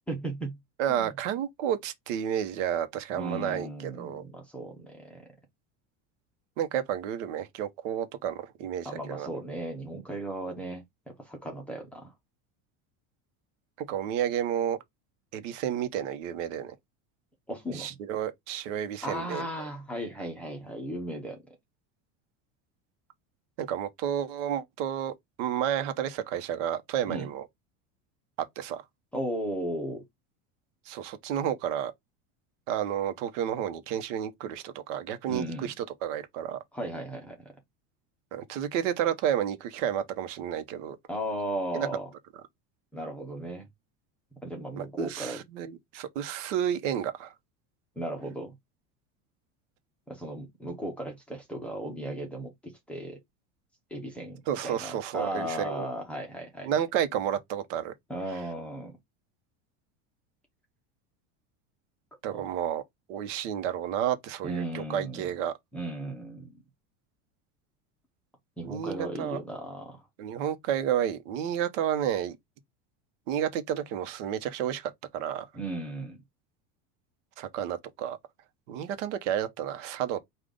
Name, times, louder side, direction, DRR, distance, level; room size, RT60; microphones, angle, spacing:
voice 1, 0.1-0.6 0.9-1.1 3.1-5.2 8.8-12.1 17.5-17.9 19.0-21.4 27.1-27.3 29.1-30.0 35.3-35.7 36.7-37.5 41.1-42.1 42.9-43.7 44.4-45.4 48.0-48.5 50.1-53.2 53.9-56.7 58.1-59.0 62.3-62.4 64.4-65.3 65.7-66.6 68.6-70.1 75.5-76.2, right 1 dB, 5° left, 0.6 m, -36 dB
voice 2, 0.8-4.2 6.6-9.3 13.8-14.8 15.3-16.7 17.7-19.4 23.6-27.5 28.6-28.8 30.9-31.9 32.7-36.6 38.3-41.0 41.7-41.9 44.7-47.3 54.5-55.9 56.6-57.9 62.2-62.8 63.1-65.5 68.6-69.4 70.2-72.4 73.3-75.4 77.4-78.2 78.7-80.2, right 10 dB, 70° right, 0.9 m, -31 dB
5.0 x 2.4 x 3.7 m
cardioid pair, 180°, 38 cm